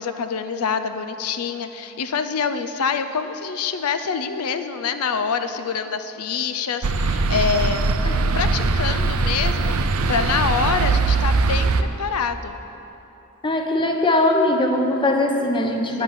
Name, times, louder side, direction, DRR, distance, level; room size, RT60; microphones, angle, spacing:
voice 1, 0.0-12.6 15.9-16.0, left 5 dB, 85° left, 9 dB, 0.5 m, -26 dB
sound 1, 6.8-11.8, right 3 dB, 70° right, 0.6 m, -21 dB
voice 2, 13.4-16.0, left 1 dB, 20° left, 3 dB, 0.9 m, -20 dB
9.5 x 7.9 x 9.0 m, 3.0 s
head